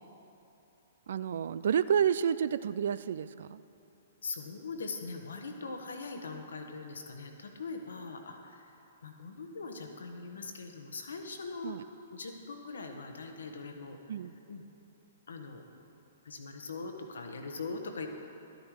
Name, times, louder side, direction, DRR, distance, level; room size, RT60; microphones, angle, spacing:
voice 1, 1.1-3.6 11.6-11.8 14.1-14.3, right 8 dB, 60° right, 16 dB, 0.3 m, -30 dB
voice 2, 4.2-8.7 9.0-11.8 12.1-14.2 14.5-14.6 15.3-15.6 16.2-18.1, left 4 dB, 70° left, 4 dB, 1.2 m, -41 dB
12.5 x 9.3 x 4.7 m, 3.0 s
figure-of-eight pair, 115°, 0 cm